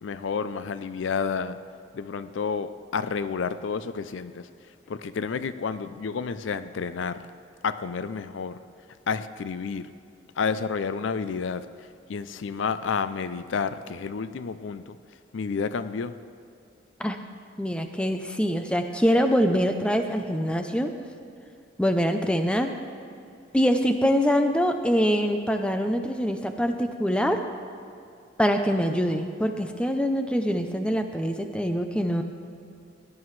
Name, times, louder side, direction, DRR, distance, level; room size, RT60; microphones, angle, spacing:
voice 1, 0.0-1.6 1.9-4.5 4.9-7.2 7.6-8.6 9.1-9.9 10.4-11.7 12.1-15.0 15.3-16.2, left 5 dB, 75° left, 13 dB, 0.4 m, -30 dB
voice 2, 17.6-20.9 21.8-22.7 23.5-27.4 28.4-32.2, equal, 5° left, 6 dB, 0.5 m, -24 dB
17.0 x 11.0 x 3.2 m, 2.6 s
head